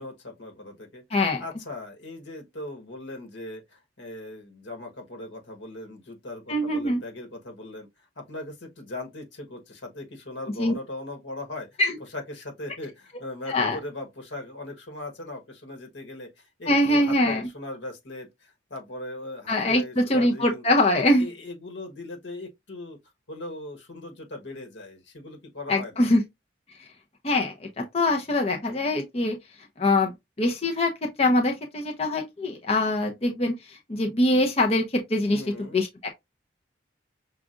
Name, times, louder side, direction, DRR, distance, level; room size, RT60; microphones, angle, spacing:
voice 1, 0.0-1.0 1.4-7.9 8.2-11.8 12.1-20.6 20.9-23.0 23.3-26.0 35.3-35.8, left 2 dB, 90° left, 1.4 m, -39 dB
voice 2, 1.1-1.4 6.5-7.0 10.6-10.7 11.8-12.0 13.5-13.8 16.7-17.4 19.5-21.3 25.7-26.2 27.2-29.4 29.8-30.1 30.4-35.4 35.7-36.1, left 1 dB, 35° left, 0.7 m, -23 dB
6.0 x 2.4 x 2.5 m
head